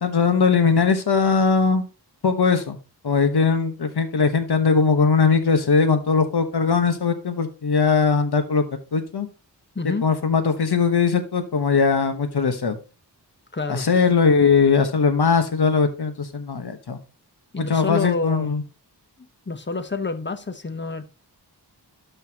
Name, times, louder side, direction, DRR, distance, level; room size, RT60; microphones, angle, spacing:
voice 1, 0.0-1.8 2.2-2.8 3.0-8.6 8.9-9.3 10.0-12.8 13.7-17.0 17.6-18.6, left 5 dB, 70° left, 1.2 m, -20 dB
voice 2, 9.7-10.0 13.5-13.9 17.5-18.6 19.5-21.1, left 3 dB, 25° left, 0.9 m, -28 dB
12.0 x 5.7 x 2.9 m
wide cardioid pair, 90°, 41 cm